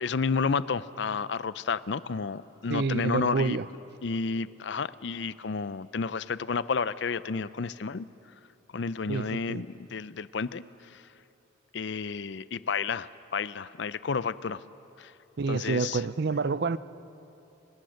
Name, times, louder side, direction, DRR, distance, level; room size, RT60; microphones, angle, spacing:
voice 1, 0.0-3.6 4.0-8.1 8.7-10.6 10.9-11.0 11.7-14.6 15.0-15.1 15.5-16.0, left 5 dB, 60° left, 0.5 m, -31 dB
voice 2, 2.7-3.7 9.1-9.6 15.4-16.8, right 4 dB, 50° right, 0.5 m, -28 dB
30.0 x 18.0 x 6.5 m
head